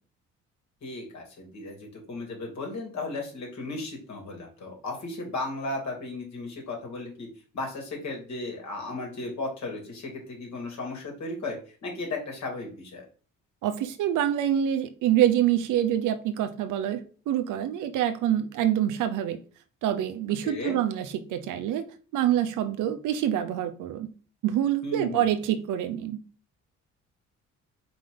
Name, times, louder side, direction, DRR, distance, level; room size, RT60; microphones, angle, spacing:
voice 1, 0.8-7.3 7.5-13.1 20.4-20.8 24.8-25.3, left 2 dB, 65° left, 3.0 m, -35 dB
voice 2, 13.6-17.0 17.3-19.4 19.8-24.1 24.4-26.2, right 11 dB, 90° right, 0.8 m, -26 dB
4.8 x 3.9 x 5.1 m
cardioid pair, 90°, 30 cm